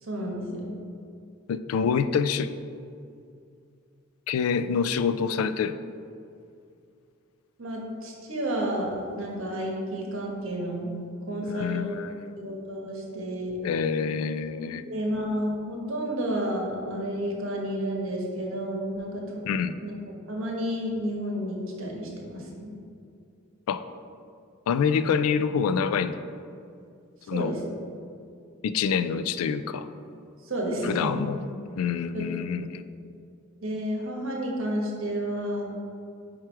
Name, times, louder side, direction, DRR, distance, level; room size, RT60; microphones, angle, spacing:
voice 1, 0.0-0.8 7.6-10.9 11.3-11.9 12.4-13.5 14.9-19.2 19.8-19.9 20.3-22.7 27.3-27.6 30.5-31.2 32.1-32.3 32.5-32.6 33.6-35.7, equal, 70° right, -1 dB, 1.1 m, -31 dB
voice 2, 1.5-2.5 4.3-5.7 11.4-12.3 13.6-14.8 19.5-19.7 23.7-23.8 24.7-26.2 27.3-27.5 28.6-29.9 30.8-31.4 31.8-32.8, left 6 dB, 85° left, 15 dB, 0.3 m, -26 dB
4.9 x 4.6 x 4.5 m, 2.4 s
head